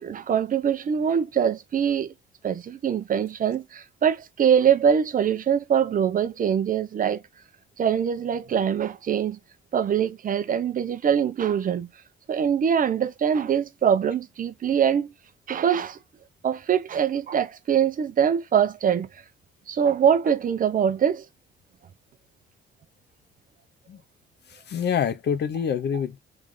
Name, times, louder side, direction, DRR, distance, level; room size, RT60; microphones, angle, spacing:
voice 1, 0.0-2.1 2.4-7.2 7.8-9.4 9.7-11.9 12.3-15.1 15.5-16.0 16.4-19.1 19.7-21.2, right 8 dB, 45° right, 0.6 m, -23 dB
voice 2, 24.5-26.2, left 7 dB, 60° left, 0.8 m, -26 dB
3.4 x 2.5 x 3.6 m
cardioid pair, 90°, 20 cm